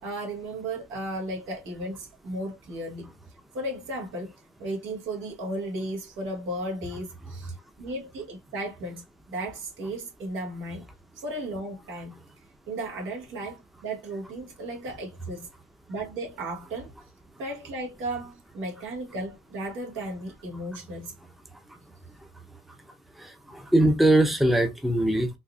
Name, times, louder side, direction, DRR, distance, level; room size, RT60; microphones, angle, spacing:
voice 1, 0.0-3.1 3.5-4.3 4.6-10.9 11.1-12.2 12.7-15.5 15.9-16.9 17.4-21.1, right 1 dB, 80° right, 1.4 m, -35 dB
voice 2, 23.2-25.4, right 1 dB, ahead, 0.6 m, -22 dB
4.1 x 2.5 x 2.3 m
cardioid pair, 90°, 20 cm